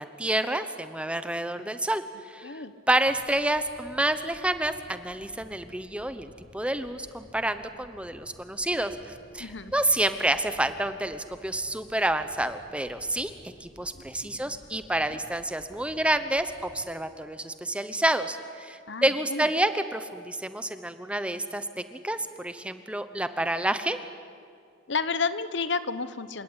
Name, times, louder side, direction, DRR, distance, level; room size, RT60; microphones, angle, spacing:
voice 1, 0.0-9.0 9.3-13.3 13.6-24.0, right 1 dB, 5° right, 10 dB, 0.9 m, -29 dB
sound 1, 3.0-17.4, equal, 40° right, 5.3 m, -54 dB
voice 2, 9.4-9.7 13.9-14.4 18.9-19.5 24.9-26.4, left 4 dB, 60° left, 14 dB, 1.0 m, -31 dB
28.5 x 17.0 x 9.7 m, 2.3 s
head